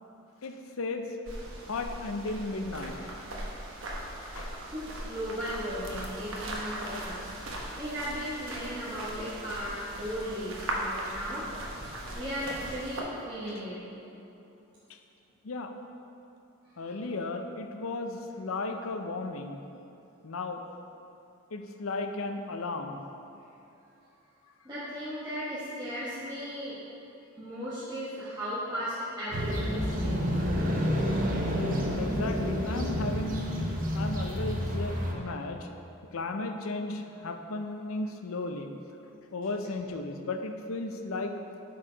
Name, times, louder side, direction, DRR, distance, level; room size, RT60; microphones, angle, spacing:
voice 1, 0.4-1.0 1.7-3.0 4.1-4.5 15.4-15.7 16.8-19.6 20.2-20.6 21.5-23.0 32.0-35.7 36.1-38.7 39.3-41.3, left 2 dB, 85° left, 5 dB, 0.6 m, -35 dB
sound 1, 1.3-13.0, right 1 dB, 70° right, 1.1 m, -39 dB
voice 2, 4.7-7.3 7.8-11.4 12.1-13.8 16.6-17.0 24.6-26.8 27.4-30.5, equal, 20° right, -11 dB, 1.2 m, -36 dB
sound 2, 29.3-35.1, equal, 40° right, 0.8 m, -29 dB
8.3 x 4.7 x 5.0 m, 2.8 s
head